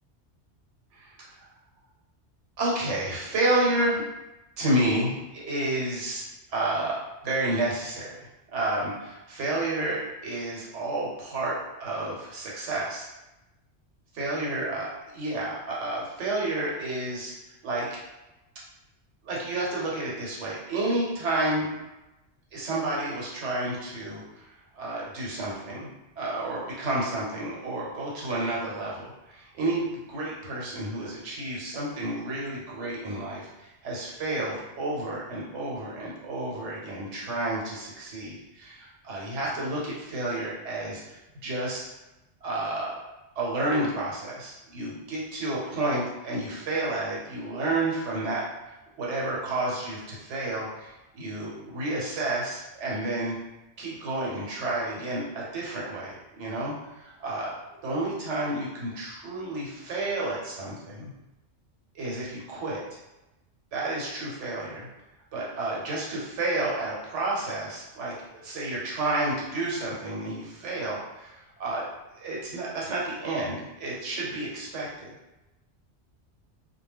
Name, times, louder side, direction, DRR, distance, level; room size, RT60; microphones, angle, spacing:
voice 1, 2.6-4.0 4.6-8.2 8.5-13.1 14.2-17.3 17.6-18.0 19.2-21.7 22.5-41.8 42.4-43.0 43.4-48.4 49.0-53.4 53.8-61.1 61.9-62.8 63.7-64.9 65.3-71.8 72.1-75.1, right 2 dB, 85° right, -5 dB, 1.1 m, -30 dB
2.2 x 2.1 x 3.3 m, 0.99 s
omnidirectional pair, 1.2 m